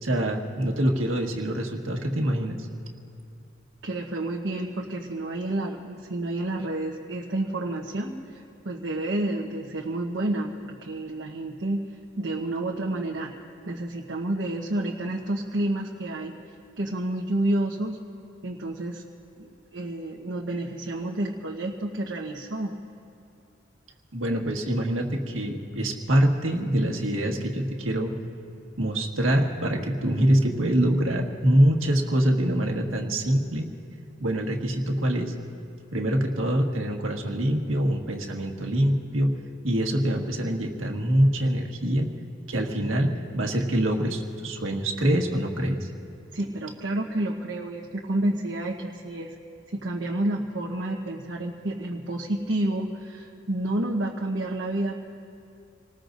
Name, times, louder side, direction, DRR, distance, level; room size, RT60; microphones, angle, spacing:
voice 1, 0.0-2.7 24.1-28.1 28.8-33.7 34.2-35.3 35.9-39.3 39.6-42.1 42.5-45.9, right 1 dB, 90° right, 1 dB, 1.7 m, -24 dB
voice 2, 3.8-11.8 12.2-13.3 13.7-16.3 16.8-18.0 18.4-19.0 19.4-22.7 46.3-49.3 49.8-55.0, right 1 dB, 70° right, -1 dB, 1.1 m, -29 dB
28.0 x 19.5 x 2.6 m, 2.7 s
head